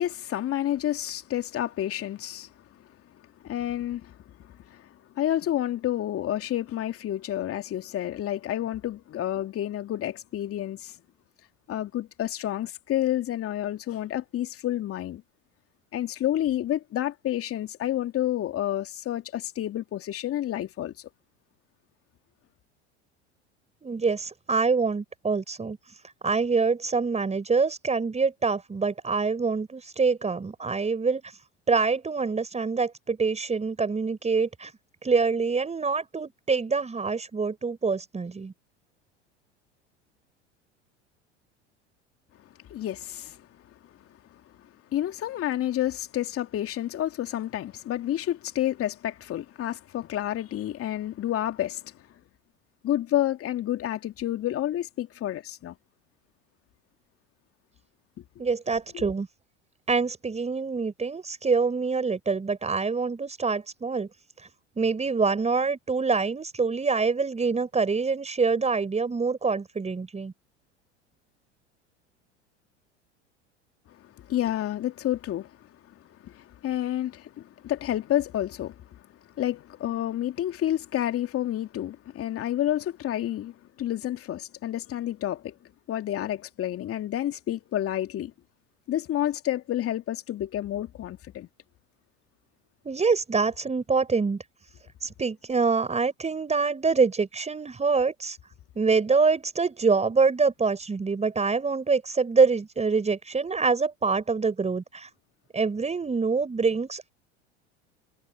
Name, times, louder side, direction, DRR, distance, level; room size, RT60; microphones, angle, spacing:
voice 1, 0.0-2.5 3.4-10.9 11.7-15.2 15.9-21.1 42.7-43.5 44.9-51.9 52.8-55.8 58.9-59.0 74.0-75.5 75.9-76.0 76.2-79.0 79.4-85.6 85.9-88.3 88.9-91.5, left 12 dB, 40° left, 2.8 m, -29 dB
voice 2, 23.8-26.0 26.2-31.3 31.7-34.7 35.0-38.5 58.4-59.3 59.9-64.1 64.4-64.5 64.8-70.3 92.8-94.4 95.0-98.4 98.8-105.1 105.5-107.1, right 4 dB, 20° right, 5.6 m, -25 dB
hypercardioid pair, 75°, 35 cm